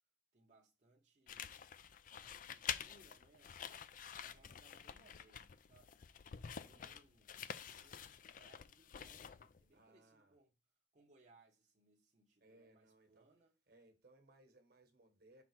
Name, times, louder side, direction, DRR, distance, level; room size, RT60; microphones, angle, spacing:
voice 1, 0.3-1.7 2.2-3.9 4.2-6.0 6.6-10.5 10.9-13.5, right 2 dB, 45° right, 0.9 m, -70 dB
sound 1, 1.3-9.6, left 8 dB, 50° left, 0.4 m, -48 dB
voice 2, 6.6-7.0 9.7-10.3 12.4-13.3 13.7-15.4, right 2 dB, 60° right, 1.4 m, -66 dB
6.0 x 3.8 x 4.6 m
head